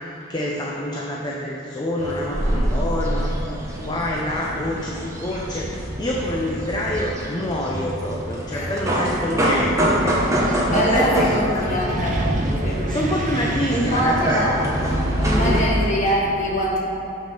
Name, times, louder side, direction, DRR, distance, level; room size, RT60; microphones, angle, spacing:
voice 1, 0.3-3.3 3.8-9.7 10.0-11.8 12.9-14.4 15.4-15.6, left 1 dB, 20° left, -3 dB, 0.6 m, -27 dB
sound 1, 2.0-15.6, right 1 dB, 15° right, 1.0 m, -25 dB
Wind, 8.5-15.8, right 1 dB, 40° right, 0.6 m, -32 dB
voice 2, 10.7-12.2 12.6-13.2 13.7-14.6 15.2-16.8, equal, 35° left, -5 dB, 1.5 m, -23 dB
7.3 x 6.0 x 5.5 m, 2.9 s
head